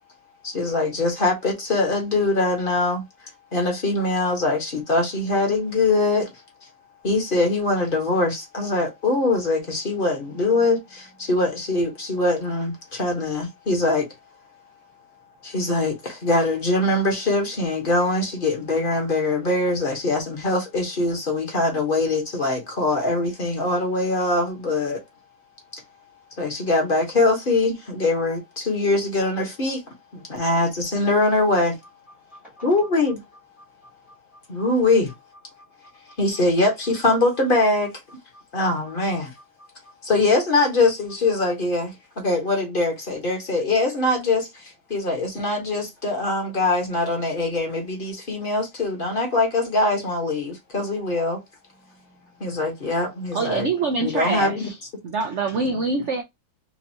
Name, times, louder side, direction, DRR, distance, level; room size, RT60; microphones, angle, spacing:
voice 1, 0.4-3.0 3.5-6.3 7.0-14.1 15.4-25.0 26.4-29.8 30.1-31.8 32.6-33.2 34.5-35.1 36.2-37.9 38.5-39.3 40.0-51.4 52.4-53.7 54.0-54.7, left 2 dB, 30° left, 1.3 m, -22 dB
voice 2, 32.3-32.6 33.8-34.4 35.6-35.7 38.3-38.4 39.6-39.7 51.8-52.7, equal, ahead, 0.8 m, -52 dB
voice 3, 53.3-54.8 55.0-56.2, right 4 dB, 80° right, 0.6 m, -25 dB
4.5 x 2.6 x 2.8 m
omnidirectional pair, 2.0 m